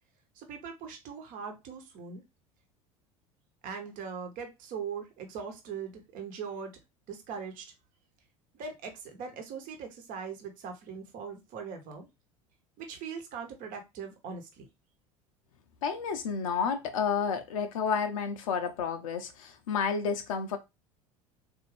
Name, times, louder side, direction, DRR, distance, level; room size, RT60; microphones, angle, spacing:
voice 1, 0.3-2.2 3.6-6.8 7.1-7.7 8.5-12.1 12.8-14.7, right 6 dB, 50° right, 1.1 m, -40 dB
voice 2, 15.8-20.6, left 6 dB, 75° left, 0.6 m, -30 dB
3.7 x 2.6 x 3.2 m
hypercardioid pair, 75°, 17 cm